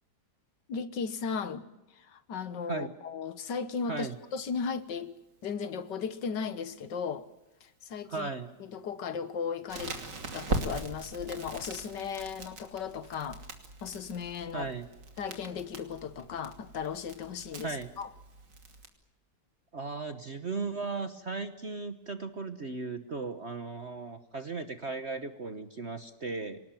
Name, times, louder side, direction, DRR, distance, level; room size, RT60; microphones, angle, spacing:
voice 1, 0.7-1.7 2.0-5.1 5.4-7.3 7.6-8.3 8.6-10.0 10.3-13.4 13.8-14.7 15.2-18.1, left 6 dB, 65° left, 1.9 m, -36 dB
voice 2, 8.1-8.5 14.5-14.9 17.6-17.9 19.7-26.6, right 4 dB, 40° right, 1.2 m, -36 dB
Crackle, 9.7-18.9, right 2 dB, 65° right, 3.3 m, -40 dB
27.0 x 19.0 x 9.1 m
omnidirectional pair, 2.1 m